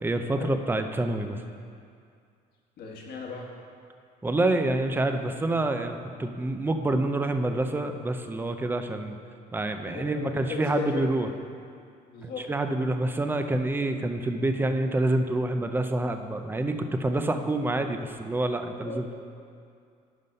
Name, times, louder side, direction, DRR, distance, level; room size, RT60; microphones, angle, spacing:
voice 1, 0.0-1.4 4.2-9.2 9.5-11.3 12.2-19.1, right 2 dB, 10° right, 7 dB, 0.5 m, -27 dB
voice 2, 2.8-3.5 9.8-11.0 12.1-12.5 18.8-19.1, left 5 dB, 65° left, -1 dB, 1.4 m, -36 dB
11.0 x 4.0 x 5.3 m, 2.3 s
cardioid pair, 110°, 17 cm